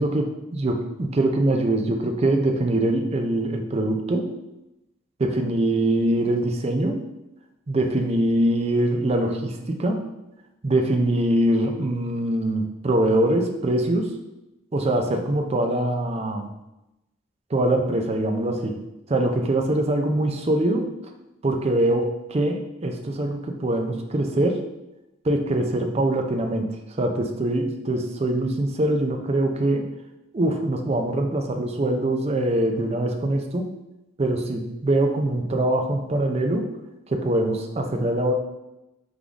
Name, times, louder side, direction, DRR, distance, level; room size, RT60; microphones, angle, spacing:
voice 1, 0.0-4.3 5.2-7.0 7.7-10.0 10.6-14.1 14.7-16.5 17.5-18.8 19.1-20.9 21.4-24.6 25.2-29.9 30.3-33.7 34.2-36.7 37.1-38.3, right 1 dB, 30° right, 4 dB, 0.5 m, -23 dB
3.7 x 3.6 x 3.5 m, 0.93 s
head